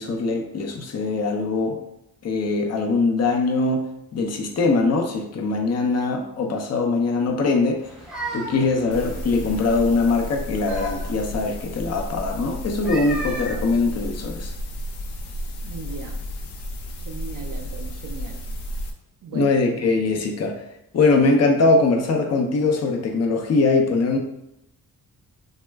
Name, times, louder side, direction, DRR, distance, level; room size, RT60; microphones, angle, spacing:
voice 1, 0.0-1.8 2.2-3.9 4.1-7.8 8.3-14.5 19.3-20.5 20.9-24.2, left 3 dB, 40° left, 3 dB, 0.6 m, -22 dB
sound 1, 7.8-9.9 10.3-11.5 12.7-14.5, right 1 dB, ahead, 0.6 m, -36 dB
sound 2, 8.9-18.9, equal, 80° left, 0.6 m, -32 dB
voice 2, 15.6-16.2 17.1-18.4 19.2-19.5, right 4 dB, 55° right, 5 dB, 0.5 m, -37 dB
3.0 x 2.1 x 3.3 m, 0.82 s
cardioid pair, 85°, 39 cm